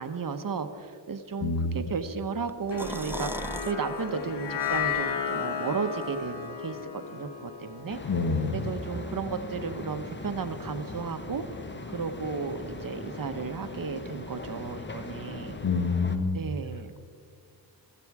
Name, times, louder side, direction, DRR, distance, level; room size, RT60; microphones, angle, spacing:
voice 1, 0.0-8.0 8.5-11.4 11.9-15.6 16.3-17.0, right 5 dB, 55° right, 9 dB, 1.0 m, -34 dB
voice 2, 1.4-1.8 8.0-8.7 15.6-16.4, left 4 dB, 65° left, 7 dB, 1.4 m, -27 dB
sound 1, 2.5-3.7 4.1-4.2 4.6-5.2, right 1 dB, 5° right, 0.5 m, -38 dB
sound 2, 2.7-9.1, left 7 dB, 85° left, 1.4 m, -34 dB
sound 3, 7.9-16.2, left 2 dB, 25° left, 1.1 m, -40 dB
15.5 x 14.5 x 4.8 m, 2.1 s
wide cardioid pair, 95°, 41 cm